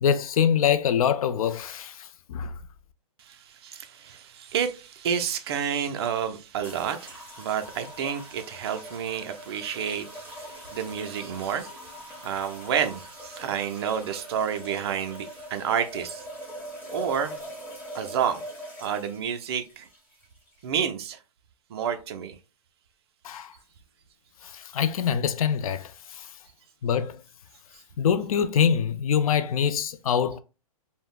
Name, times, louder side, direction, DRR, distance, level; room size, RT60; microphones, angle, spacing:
voice 1, 0.0-2.5 23.2-23.5 24.5-25.9 26.2-26.3 26.8-27.2 28.0-30.4, left 8 dB, 65° left, 0.4 m, -24 dB
voice 2, 3.2-16.3 16.9-17.4 17.9-18.4 18.8-19.9 20.6-21.2 21.7-22.4, right 8 dB, 40° right, 0.5 m, -30 dB
sound 1, 6.6-20.9, equal, 10° left, 0.8 m, -42 dB
3.4 x 2.0 x 2.3 m
hypercardioid pair, 155°, 19 cm